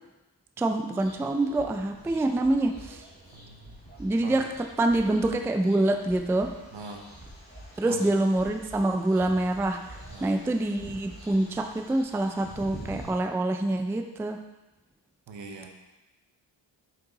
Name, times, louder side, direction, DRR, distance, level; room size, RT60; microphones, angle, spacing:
voice 1, 0.6-3.0 4.0-6.5 7.8-9.8 10.2-14.4, right 2 dB, 5° right, 5 dB, 0.3 m, -26 dB
sound 1, 0.9-13.1, right 1 dB, 20° left, 1.9 m, -48 dB
sound 2, 1.5-10.1 10.4-12.0, right 2 dB, 30° right, 2.4 m, -50 dB
voice 2, 3.3-3.8 4.2-4.4 5.0-5.2 6.7-7.0 7.9-8.1 10.1-10.4 15.3-15.7, right 3 dB, 75° right, 2 dB, 1.1 m, -42 dB
5.4 x 5.4 x 4.0 m, 1.0 s
wide cardioid pair, 105°, 45 cm